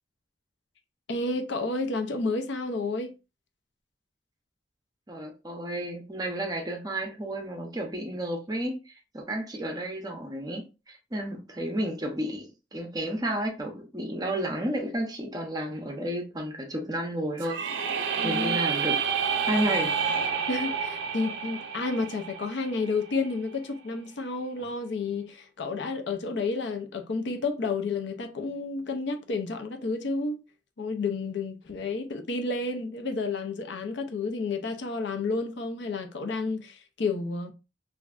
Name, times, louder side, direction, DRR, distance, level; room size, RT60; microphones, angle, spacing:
voice 1, 1.1-3.1 18.2-18.6 20.5-30.4 30.8-37.5, left 3 dB, 65° left, 0.5 m, -31 dB
voice 2, 5.1-17.9 18.2-20.0, right 1 dB, 20° right, 0.6 m, -32 dB
sound 1, 17.4-23.3, right 6 dB, 75° right, 0.5 m, -29 dB
3.1 x 2.5 x 2.3 m
head